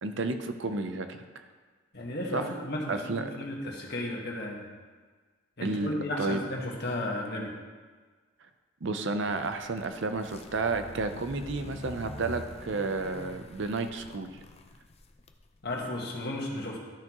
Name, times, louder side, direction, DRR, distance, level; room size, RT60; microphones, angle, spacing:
voice 1, 0.0-1.4 2.3-2.5 2.9-3.3 5.6-5.9 6.2-6.4 8.8-14.3, right 3 dB, 65° right, 8 dB, 0.7 m, -31 dB
voice 2, 1.9-4.7 5.6-7.5 15.6-16.8, left 1 dB, 55° left, -1 dB, 1.6 m, -34 dB
sound 1, 9.2-15.8, left 2 dB, 30° left, 0.5 m, -46 dB
13.0 x 5.9 x 3.0 m, 1.4 s
head